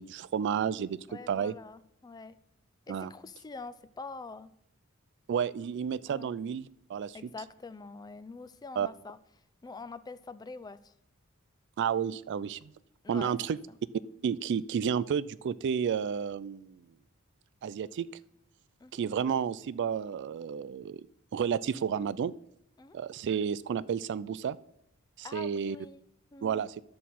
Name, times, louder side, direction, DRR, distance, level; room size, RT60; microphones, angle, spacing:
voice 1, 0.0-1.0 1.3-1.5 2.9-3.1 5.3-7.2 8.8-8.9 11.8-12.7 13.1-13.6 14.2-16.8 17.6-18.1 18.9-21.0 21.3-22.3 22.9-24.6 25.2-25.8 26.4-26.8, right 7 dB, 55° right, 18 dB, 0.3 m, -31 dB
voice 2, 1.1-2.4 2.9-4.5 6.1-6.3 7.1-9.2 9.6-10.9 13.0-13.4 18.8-19.0 22.8-23.0 25.2-26.0 26.3-26.7, left 4 dB, 20° left, 14 dB, 0.4 m, -45 dB
11.0 x 7.5 x 4.2 m, 0.76 s
head